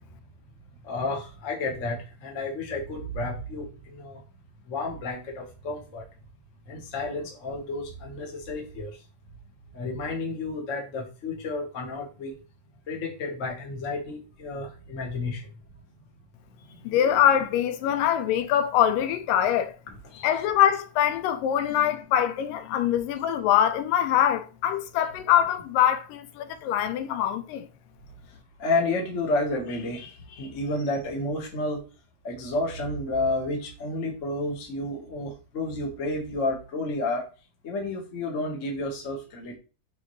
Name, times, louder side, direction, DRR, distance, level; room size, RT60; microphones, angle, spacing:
voice 1, 0.8-4.2 4.6-6.1 6.7-9.0 9.7-12.3 12.9-15.5 19.9-20.3 28.6-31.8 32.2-37.3 37.6-39.6, left 2 dB, 50° left, 0.9 m, -31 dB
voice 2, 16.9-19.7 20.2-27.7, left 10 dB, 85° left, 2.4 m, -23 dB
5.8 x 5.1 x 3.1 m
omnidirectional pair, 3.8 m